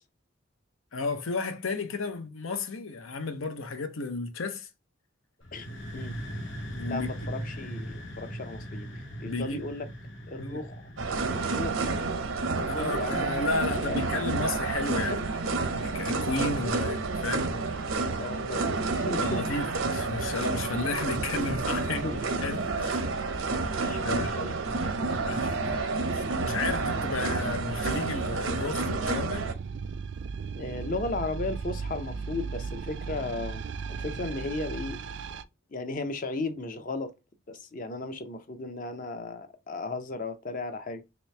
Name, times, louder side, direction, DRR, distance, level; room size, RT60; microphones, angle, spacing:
voice 1, 0.9-4.7 6.7-7.1 9.3-9.6 10.4-10.7 12.7-17.6 19.1-22.0 22.4-23.0 23.7-24.4 25.2-25.8 26.1-29.5, left 3 dB, 90° left, 0.7 m, -33 dB
sound 1, 5.4-13.1, equal, 65° left, 1.0 m, -40 dB
voice 2, 5.5-6.2 6.9-9.9 10.3-10.8 11.3-12.0 12.6-13.3 13.7-14.1 15.1-15.2 18.1-19.4 21.9-22.2 22.7-22.8 23.8-24.6 25.1-25.2 30.6-33.6 33.9-35.0 35.7-37.1 37.5-41.0, left 2 dB, 40° left, 0.5 m, -36 dB
sound 2, 11.0-29.5, right 3 dB, 85° right, 0.7 m, -30 dB
sound 3, 26.4-35.4, right 5 dB, 60° right, 0.3 m, -37 dB
3.2 x 3.0 x 3.1 m
head